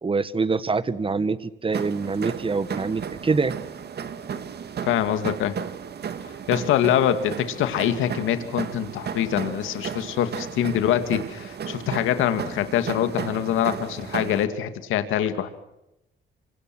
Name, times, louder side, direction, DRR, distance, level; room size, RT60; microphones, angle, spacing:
voice 1, 0.0-3.5, right 4 dB, 25° right, 15 dB, 1.5 m, -25 dB
sound 1, 1.7-14.4, right 7 dB, 55° right, 2.1 m, -34 dB
voice 2, 4.8-5.6 6.3-15.5, left 10 dB, 90° left, 9 dB, 2.3 m, -24 dB
27.5 x 25.0 x 6.2 m, 0.86 s
cardioid pair, 90°, 20 cm